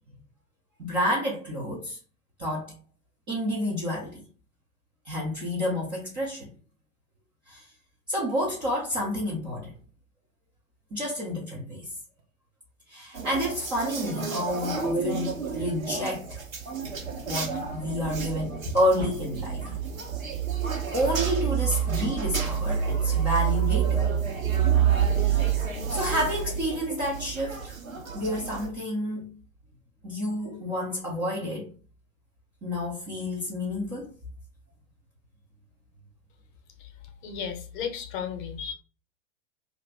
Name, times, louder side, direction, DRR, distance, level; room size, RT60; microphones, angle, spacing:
voice 1, 0.8-2.0 2.4-2.7 3.3-4.2 5.0-6.5 7.5-7.7 8.1-9.7 10.9-11.9 12.9-16.4 17.3-19.7 20.9-24.4 25.2-25.5 25.9-27.8 28.1-29.3 30.0-31.7 32.6-34.1, left 1 dB, 15° right, -5 dB, 0.3 m, -29 dB
sound 1, 9.7-9.9 11.4-11.5 12.2-12.3 14.5-15.3 15.8-16.1 18.5-22.2 26.0-26.2, right 2 dB, 35° right, 0.8 m, -43 dB
sound 2, 13.1-28.7, right 8 dB, 80° right, 1.0 m, -28 dB
voice 2, 37.2-38.7, left 7 dB, 40° left, 6 dB, 0.7 m, -34 dB
2.5 x 2.5 x 3.3 m, 0.38 s
figure-of-eight pair, 100°, 40 cm